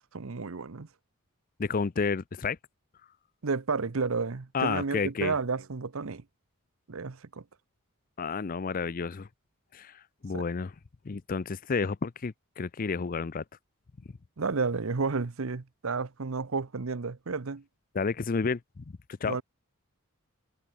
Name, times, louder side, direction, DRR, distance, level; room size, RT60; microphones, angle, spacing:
voice 1, 0.1-0.9 3.4-6.2 6.9-7.4 10.3-10.4 14.4-17.6 19.3-19.4, right 4 dB, 70° right, 0.8 m, -31 dB
voice 2, 1.6-2.6 4.5-5.3 8.2-9.3 9.7-10.7 11.0-13.4 17.9-18.8 19.2-19.4, left 5 dB, 40° left, 0.5 m, -31 dB
head